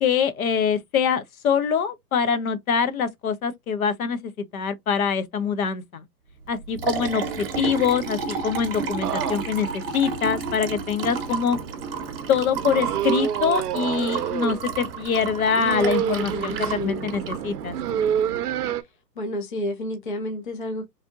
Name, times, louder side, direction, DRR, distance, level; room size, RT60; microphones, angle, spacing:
voice 1, 0.0-6.0 6.5-11.6 12.3-17.8, left 6 dB, 60° left, 0.8 m, -24 dB
Liquid, 6.4-18.4, right 5 dB, 35° right, 0.7 m, -32 dB
sound 1, 9.0-18.8, right 10 dB, 70° right, 0.7 m, -29 dB
voice 2, 16.0-17.1 19.2-20.9, left 1 dB, 35° left, 0.4 m, -31 dB
3.3 x 2.6 x 2.4 m
hypercardioid pair, 170°, 49 cm